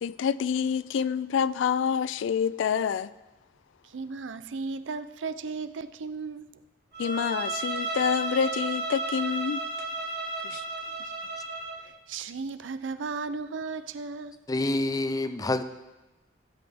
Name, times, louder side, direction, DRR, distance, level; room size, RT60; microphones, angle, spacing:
voice 1, 0.0-3.1 7.0-9.6 10.4-10.6, left 7 dB, 80° left, 17 dB, 0.3 m, -27 dB
voice 2, 3.8-6.4 10.5-10.6 11.0-11.1 11.8-14.4, right 4 dB, 80° right, 12 dB, 0.5 m, -35 dB
Bowed string instrument, 6.9-11.8, right 2 dB, 60° right, 2.8 m, -33 dB
voice 3, 14.5-15.6, left 2 dB, 20° left, 11 dB, 0.4 m, -27 dB
15.0 x 8.0 x 3.5 m, 1.1 s
head